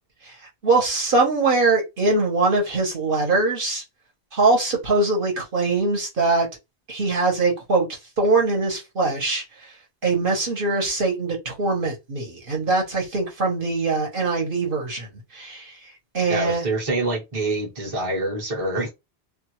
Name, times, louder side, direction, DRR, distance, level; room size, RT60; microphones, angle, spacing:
voice 1, 0.6-3.8 4.3-6.5 6.9-9.4 10.0-15.8 16.1-16.7, right 3 dB, 55° right, 1.2 m, -22 dB
voice 2, 16.3-18.9, right 2 dB, 35° right, 1.0 m, -26 dB
2.6 x 2.4 x 3.0 m
omnidirectional pair, 1.1 m